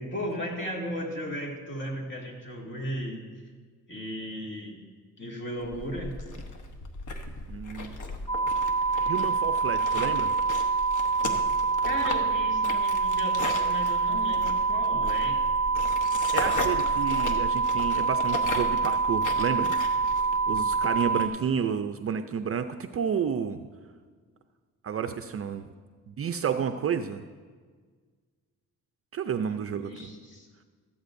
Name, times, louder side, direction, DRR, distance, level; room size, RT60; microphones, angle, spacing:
voice 1, 0.0-3.2 3.9-4.8 5.2-6.1 11.8-15.4 21.3-21.6 29.5-30.5, equal, 35° left, -1 dB, 2.5 m, -36 dB
sound 1, 5.6-21.2, left 2 dB, 60° left, 1.2 m, -37 dB
voice 2, 7.5-7.9 9.0-10.3 16.3-19.7 20.5-23.6 24.8-25.7 26.1-27.2 29.1-30.1, right 7 dB, 40° right, 8 dB, 0.5 m, -30 dB
sound 2, 8.3-21.3, right 4 dB, 15° left, 0.9 m, -26 dB
15.0 x 13.5 x 2.6 m, 1.5 s
cardioid pair, 115°, 34 cm